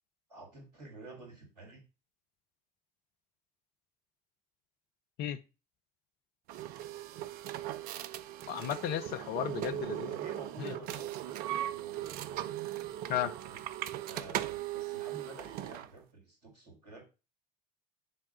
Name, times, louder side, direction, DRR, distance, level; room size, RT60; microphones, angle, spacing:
voice 1, 0.3-1.8 9.5-9.7 10.1-12.4 13.4-13.6 14.0-17.1, right 2 dB, 80° right, -1 dB, 2.0 m, -50 dB
sound 1, 6.5-15.9, right 13 dB, 45° right, 0.5 m, -38 dB
voice 2, 8.5-10.1 10.6-10.7 13.1-13.3, left 10 dB, 50° left, 11 dB, 0.7 m, -34 dB
5.4 x 3.6 x 5.5 m, 0.30 s
figure-of-eight pair, 65°, 20 cm